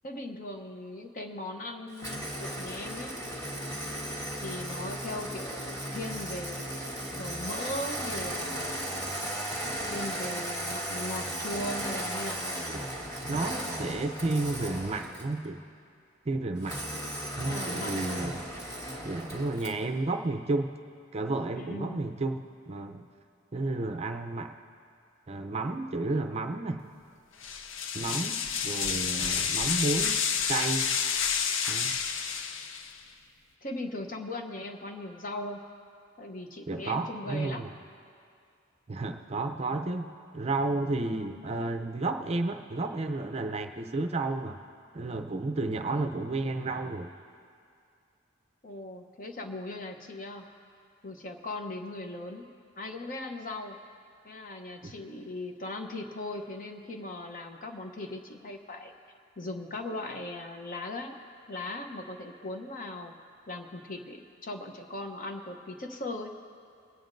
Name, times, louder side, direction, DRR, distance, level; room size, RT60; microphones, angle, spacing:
voice 1, 0.0-3.1 4.4-6.8 7.1-8.7 9.9-12.5 17.4-18.2 21.6-22.1 33.6-35.6 36.2-37.6 48.6-50.5 51.0-52.5 52.8-53.8 54.2-58.9 59.4-61.2 61.5-63.1 63.5-66.3, left 2 dB, 45° left, 4 dB, 0.8 m, -39 dB
Engine starting, 2.0-15.4 16.6-19.8, right 1 dB, 20° left, 1.5 m, -36 dB
voice 2, 13.2-15.6 16.3-16.8 17.4-18.4 19.0-20.7 21.1-23.1 23.5-24.5 25.3-26.8 27.9-30.2 30.5-30.9 31.7-32.0 36.7-37.7 38.9-44.6 44.9-47.1 54.8-54.9, right 2 dB, 30° right, 6 dB, 0.5 m, -32 dB
sound 1, 27.4-33.0, left 6 dB, 75° left, 0.6 m, -29 dB
25.5 x 9.2 x 2.6 m, 2.4 s
head